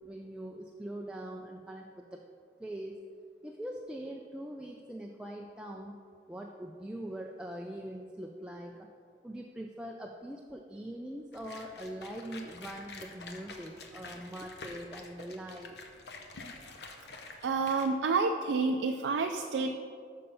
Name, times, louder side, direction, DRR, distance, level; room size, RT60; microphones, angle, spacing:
voice 1, 0.0-2.2 2.6-3.0 3.4-6.0 6.3-8.9 9.2-15.8, right 1 dB, 5° right, 0 dB, 0.3 m, -42 dB
sound 1, 11.3-17.9, left 3 dB, 65° left, 0.7 m, -48 dB
voice 2, 17.4-19.8, right 4 dB, 85° right, 4 dB, 0.4 m, -29 dB
6.8 x 5.5 x 5.5 m, 2.3 s
head